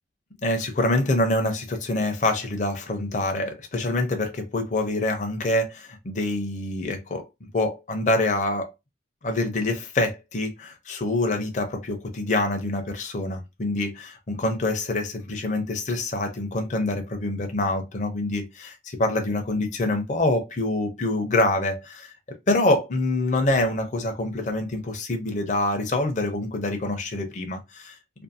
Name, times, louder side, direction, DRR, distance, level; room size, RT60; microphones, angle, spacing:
voice 1, 0.4-8.7 9.2-28.0, left 2 dB, 40° left, 0.5 m, -26 dB
2.5 x 2.4 x 2.6 m
head